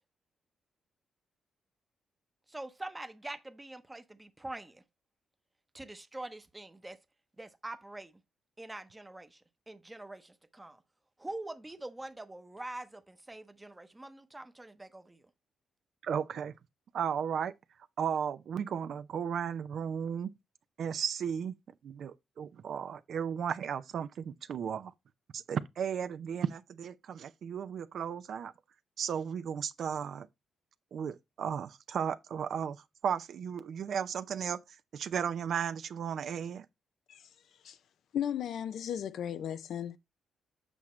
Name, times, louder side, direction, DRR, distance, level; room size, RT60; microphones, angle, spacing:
voice 1, 2.5-4.8 5.7-7.0 7.4-8.2 8.6-10.8 11.2-15.3, right 2 dB, 15° right, 0.9 m, -44 dB
voice 2, 16.0-16.5 16.9-17.5 18.0-20.3 20.8-21.5 21.8-24.9 25.3-28.5 29.0-30.3 30.9-34.6 34.9-36.7, right 7 dB, 65° right, 0.5 m, -35 dB
voice 3, 38.1-40.0, left 9 dB, 70° left, 0.5 m, -35 dB
8.1 x 5.8 x 3.1 m
cardioid pair, 100°, 0 cm